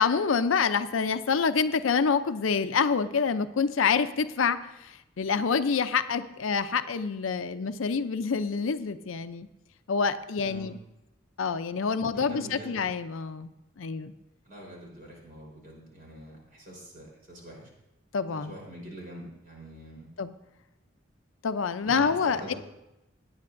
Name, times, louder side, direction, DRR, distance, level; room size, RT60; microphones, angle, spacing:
voice 1, 0.0-9.5 9.9-10.8 11.4-14.1 18.1-18.5 20.2-20.3 21.4-22.5, left 5 dB, 85° left, 12 dB, 0.5 m, -27 dB
voice 2, 12.0-12.8 14.5-17.7 18.3-20.1 21.8-22.6, right 1 dB, 45° right, -2 dB, 3.9 m, -44 dB
17.0 x 9.6 x 2.6 m, 0.91 s
head